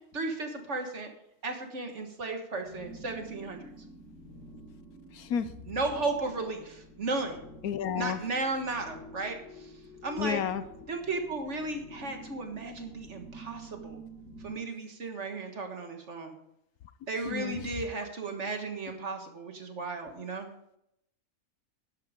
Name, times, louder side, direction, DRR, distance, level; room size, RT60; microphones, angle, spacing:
voice 1, 0.1-1.1 1.4-3.6 5.7-6.6 7.0-7.4 7.9-9.4 10.0-10.4 10.9-14.0 14.4-16.3 17.1-20.5, right 3 dB, 50° right, 4 dB, 1.8 m, -34 dB
sound 1, 2.6-14.6, equal, 50° left, 4.6 m, -49 dB
voice 2, 5.1-5.5 7.6-8.2 10.2-10.6 17.2-17.8, left 8 dB, 75° left, 12 dB, 1.2 m, -31 dB
12.5 x 10.0 x 3.6 m, 0.77 s
omnidirectional pair, 1.6 m